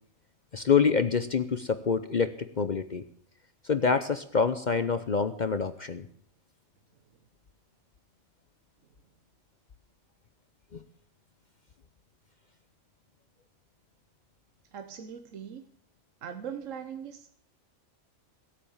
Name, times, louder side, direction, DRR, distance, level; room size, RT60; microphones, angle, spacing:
voice 1, 0.5-3.0 3.6-6.1 10.7-10.8, left 5 dB, 45° left, 12 dB, 0.7 m, -26 dB
voice 2, 14.7-15.6 16.2-17.3, right 8 dB, 75° right, 8 dB, 1.3 m, -40 dB
17.5 x 8.7 x 7.2 m, 0.65 s
omnidirectional pair, 1.3 m